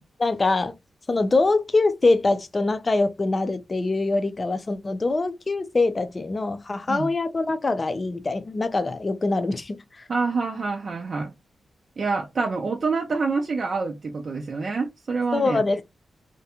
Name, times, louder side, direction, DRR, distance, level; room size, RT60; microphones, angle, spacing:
voice 1, 0.2-0.7 1.1-10.0 15.3-15.8, left 3 dB, 30° left, 0.5 m, -24 dB
voice 2, 10.1-11.3 12.0-15.6, right 4 dB, 50° right, 0.4 m, -26 dB
2.5 x 2.2 x 2.8 m
wide cardioid pair, 100°, 0 cm